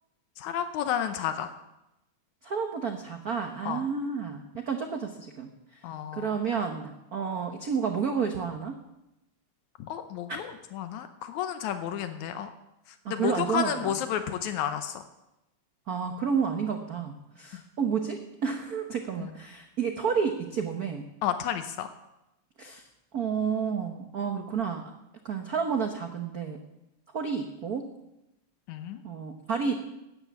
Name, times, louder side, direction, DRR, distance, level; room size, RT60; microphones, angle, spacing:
voice 1, 0.4-1.5 3.7-3.8 5.8-6.3 9.8-12.5 13.1-15.0 21.2-21.9 28.7-29.0, left 9 dB, 80° left, 9 dB, 2.2 m, -31 dB
voice 2, 2.4-5.5 6.1-8.8 10.3-10.4 13.0-14.0 15.9-21.0 22.6-22.8 23.1-24.8 25.2-26.6 27.1-27.9 29.0-29.8, right 6 dB, 70° right, 5 dB, 0.8 m, -30 dB
13.0 x 9.8 x 8.3 m, 0.92 s
omnidirectional pair, 3.3 m